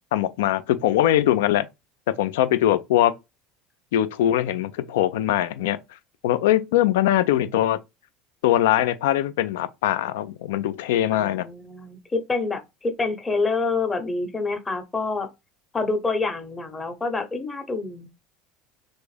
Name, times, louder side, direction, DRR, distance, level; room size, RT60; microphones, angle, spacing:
voice 1, 0.1-1.7 2.1-3.1 3.9-5.8 6.2-7.8 8.4-11.4, left 12 dB, 70° left, 0.4 m, -21 dB
voice 2, 11.1-15.3 15.7-18.1, left 3 dB, 20° left, 0.9 m, -27 dB
3.4 x 2.6 x 3.2 m
hypercardioid pair, 75°, 0 cm